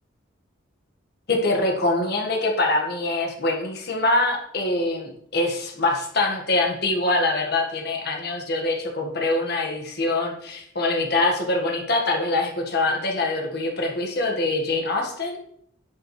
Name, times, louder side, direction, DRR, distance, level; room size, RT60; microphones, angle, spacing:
voice 1, 1.3-15.4, left 2 dB, 50° left, 1 dB, 1.7 m, -24 dB
11.0 x 6.2 x 3.3 m, 0.71 s
head